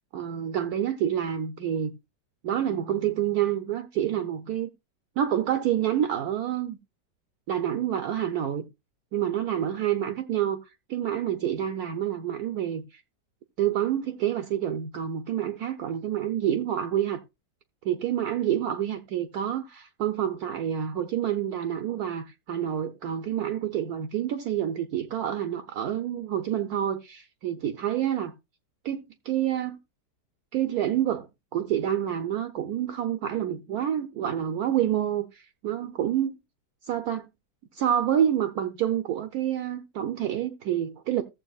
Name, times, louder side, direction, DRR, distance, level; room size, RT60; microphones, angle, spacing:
voice 1, 0.1-1.9 2.4-4.7 5.2-6.8 7.5-8.7 9.1-10.6 10.9-13.0 13.6-17.2 17.8-28.3 28.8-29.8 30.5-31.3 31.5-36.3 36.8-37.3 37.7-41.2, right 10 dB, 65° right, 1.1 m, -28 dB
14.5 x 7.5 x 2.3 m
omnidirectional pair, 1.8 m